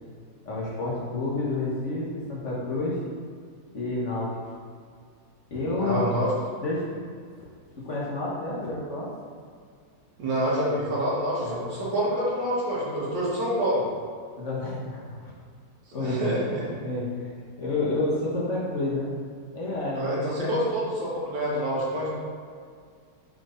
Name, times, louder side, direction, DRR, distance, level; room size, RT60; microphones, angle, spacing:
voice 1, 0.4-3.0 3.7-4.6 5.5-6.0 6.6-6.8 7.8-9.1 11.4-11.6 14.4-15.2 15.9-16.4 16.8-17.3 17.6-19.1 19.5-20.6, left 2 dB, 45° left, -5 dB, 1.4 m, -29 dB
voice 2, 5.8-6.3 10.2-13.8 16.0-16.7 20.0-22.1, equal, 85° right, -6 dB, 2.3 m, -27 dB
4.9 x 4.4 x 5.0 m, 2.1 s
omnidirectional pair, 1.9 m